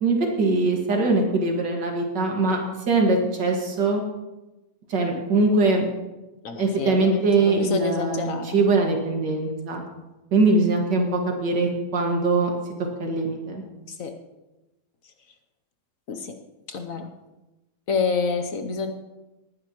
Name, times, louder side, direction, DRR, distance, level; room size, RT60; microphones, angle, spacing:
voice 1, 0.0-2.6 2.9-4.0 4.9-5.8 6.6-9.8 10.3-12.5 13.0-13.6, right 3 dB, 80° right, 1 dB, 2.6 m, -22 dB
voice 2, 6.4-8.6 14.0-14.2 16.1-16.3 16.7-17.1 17.9-18.9, left 5 dB, 55° left, 7 dB, 1.1 m, -28 dB
19.5 x 10.5 x 3.0 m, 1.0 s
omnidirectional pair, 1.9 m